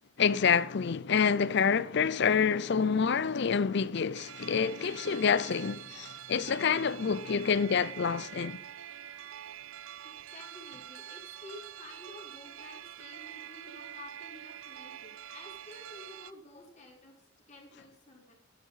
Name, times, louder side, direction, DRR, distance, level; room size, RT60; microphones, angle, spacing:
voice 1, 0.2-8.6, left 6 dB, 55° left, 0.5 m, -27 dB
sound 1, 4.1-16.3, right 11 dB, 75° right, 0.7 m, -46 dB
voice 2, 10.0-17.1 17.5-18.3, left 2 dB, 35° left, 4.3 m, -51 dB
12.5 x 10.5 x 5.7 m
head